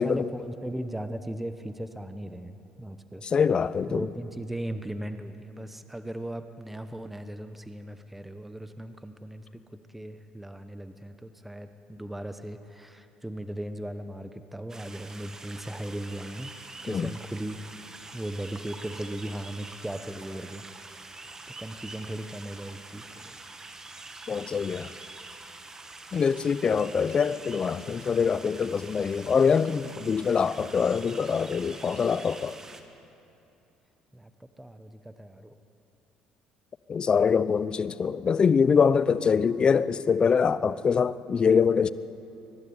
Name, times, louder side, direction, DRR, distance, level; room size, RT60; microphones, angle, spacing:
voice 1, 0.0-3.2 3.9-16.5 16.8-17.7 18.1-20.6 21.6-23.4 34.1-35.5, right 1 dB, 5° right, 1.0 m, -37 dB
voice 2, 3.2-4.1 16.9-17.1 24.3-24.9 26.1-32.6 36.9-41.9, left 6 dB, 40° left, 0.7 m, -24 dB
sound 1, 14.7-32.8, right 3 dB, 25° right, 1.8 m, -45 dB
22.5 x 12.0 x 9.7 m
supercardioid pair, 75°, 2 cm